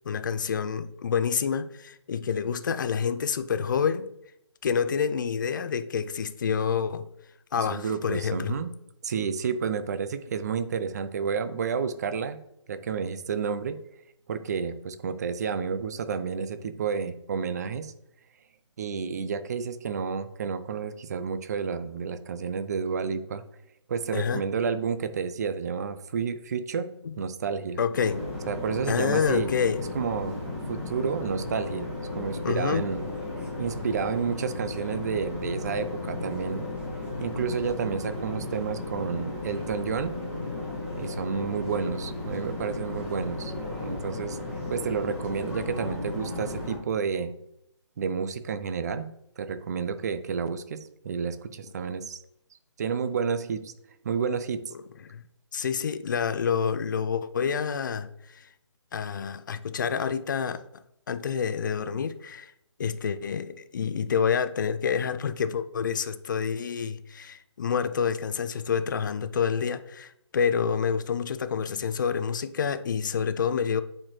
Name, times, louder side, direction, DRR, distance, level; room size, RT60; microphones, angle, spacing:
voice 1, 0.1-4.1 4.6-7.1 7.5-8.6 24.1-24.4 27.0-27.1 27.8-28.2 28.9-29.8 32.4-32.9 55.1-55.2 55.5-58.5 58.9-60.6 61.1-62.5 62.8-73.8, left 6 dB, 40° left, 12 dB, 0.4 m, -28 dB
voice 2, 7.6-8.7 9.0-12.4 12.7-13.8 14.3-17.9 18.8-23.4 23.9-26.9 27.2-27.8 28.5-29.5 29.9-30.3 30.7-33.1 33.6-36.7 37.2-40.1 41.0-43.5 43.8-44.4 44.7-47.3 48.0-49.1 49.4-52.2 52.8-53.7 54.0-54.6, right 6 dB, 35° right, 12 dB, 0.4 m, -30 dB
sound 1, 27.9-46.8, left 2 dB, 10° right, 1.7 m, -35 dB
8.6 x 4.2 x 3.1 m, 0.78 s
figure-of-eight pair, 145°, 16 cm